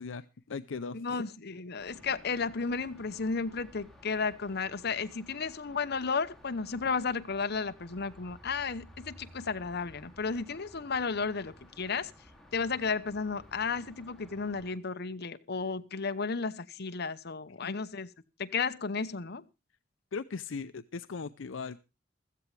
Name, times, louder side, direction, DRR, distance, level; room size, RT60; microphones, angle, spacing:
voice 1, 0.0-1.2 17.6-17.7 20.1-21.8, left 5 dB, 80° left, 0.6 m, -39 dB
voice 2, 0.9-12.1 12.5-18.1 18.4-19.4, left 5 dB, 55° left, 0.9 m, -33 dB
sound 1, 1.8-14.7, equal, ahead, 2.9 m, -55 dB
15.5 x 14.0 x 3.3 m
head